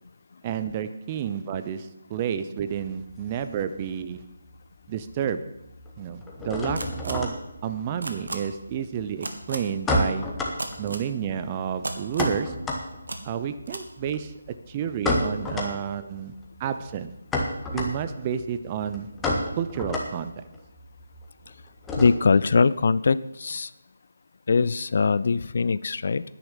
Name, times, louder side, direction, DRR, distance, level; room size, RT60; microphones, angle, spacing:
voice 1, 0.4-4.2 4.9-5.5 6.0-10.4 10.8-12.6 13.2-14.4 14.7-16.3 16.6-17.1 17.7-19.1 19.6-20.4, right 8 dB, 25° right, 11 dB, 0.7 m, -30 dB
sound 1, 2.6-4.2 4.5-5.2 5.4-22.5, left 1 dB, 10° left, 1.6 m, -31 dB
sound 2, 6.8-7.1 8.0-8.4 9.2-9.6 10.6-11.0 11.8-12.4 13.1-13.2 13.7-13.8, right 2 dB, 70° right, 1.8 m, -33 dB
voice 2, 22.0-23.7 24.5-26.2, left 4 dB, 50° left, 17 dB, 0.4 m, -22 dB
10.0 x 8.9 x 7.3 m, 0.89 s
figure-of-eight pair, 155°, 0 cm